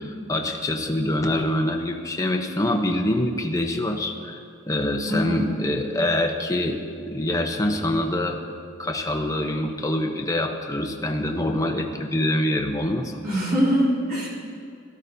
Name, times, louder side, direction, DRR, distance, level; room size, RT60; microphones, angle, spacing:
voice 1, 0.3-4.4 4.7-6.8 7.1-8.4 8.8-13.2, left 1 dB, 15° left, 2 dB, 0.7 m, -25 dB
voice 2, 5.1-5.5 13.2-14.3, equal, 45° right, -7 dB, 3.3 m, -23 dB
16.5 x 13.0 x 2.7 m, 2.3 s
head